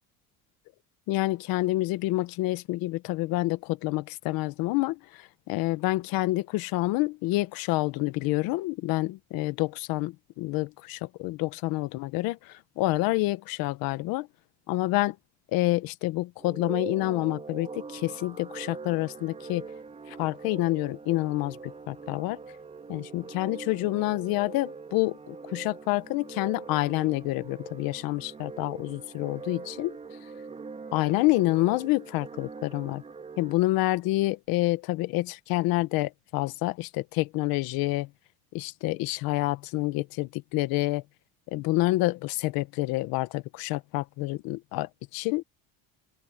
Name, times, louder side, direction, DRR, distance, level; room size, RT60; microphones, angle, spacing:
voice 1, 1.1-5.0 5.5-14.3 14.7-15.1 15.5-19.6 20.1-22.4 22.9-30.0 30.9-33.0 33.4-38.1 38.5-41.0 41.5-45.4, left 19 dB, 75° left, 1.2 m, -28 dB
sound 1, 16.4-33.5, right 4 dB, 20° right, 3.1 m, -42 dB
open air
cardioid pair, 165°, 36 cm